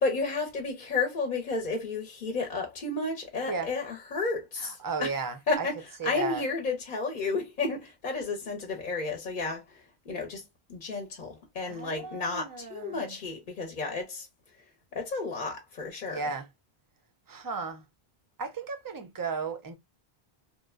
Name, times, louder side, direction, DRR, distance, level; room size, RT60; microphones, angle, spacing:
voice 1, 0.0-5.2 5.5-14.3 14.9-16.3, left 3 dB, 55° left, 0.7 m, -32 dB
voice 2, 4.8-5.7 6.0-6.4 11.7-13.1 16.1-16.5 17.3-17.8 18.4-19.7, right 5 dB, 35° right, 0.3 m, -34 dB
3.0 x 2.1 x 2.3 m
omnidirectional pair, 1.0 m